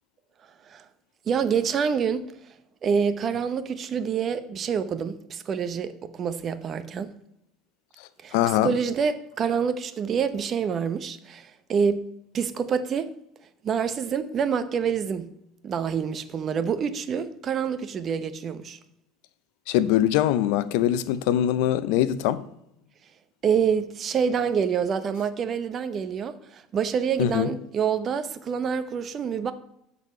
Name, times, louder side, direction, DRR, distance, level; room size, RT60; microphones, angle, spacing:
voice 1, 1.3-2.3 2.8-7.1 8.2-8.3 8.6-12.0 12.3-13.1 13.6-15.3 15.6-18.8 23.4-29.5, right 7 dB, 35° right, 0.8 m, -27 dB
voice 2, 8.3-8.7 19.7-22.4 27.2-27.5, left 12 dB, 80° left, 0.6 m, -22 dB
12.0 x 4.1 x 5.5 m
cardioid pair, 135°, 0 cm